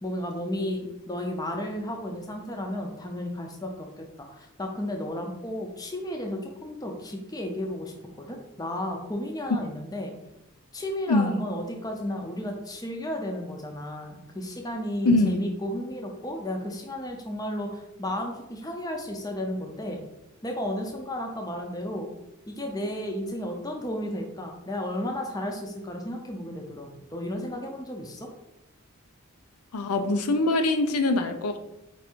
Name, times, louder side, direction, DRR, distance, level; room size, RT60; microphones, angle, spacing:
voice 1, 0.0-10.1 10.7-20.0 20.4-22.1 22.5-28.3, left 1 dB, 15° left, 2 dB, 0.5 m, -33 dB
voice 2, 11.1-11.4 15.0-15.5 29.7-31.6, left 2 dB, 90° left, 7 dB, 0.5 m, -23 dB
4.6 x 2.6 x 4.4 m, 0.89 s
head